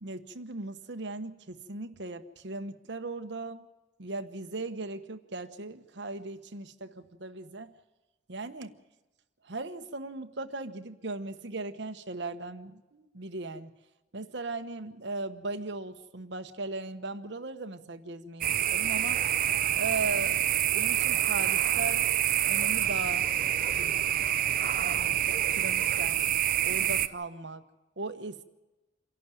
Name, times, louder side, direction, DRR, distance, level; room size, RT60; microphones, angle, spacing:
voice 1, 0.0-3.6 4.0-7.7 8.3-8.7 9.4-13.7 14.1-19.2 19.8-22.1 22.5-23.2 23.8-24.3 24.8-26.2 26.6-27.6 28.0-28.4, right 3 dB, 60° right, 8 dB, 1.1 m, -38 dB
sound 1, 18.4-27.1, right 11 dB, 45° right, 0.6 m, -27 dB
26.5 x 11.5 x 9.1 m, 1.1 s
head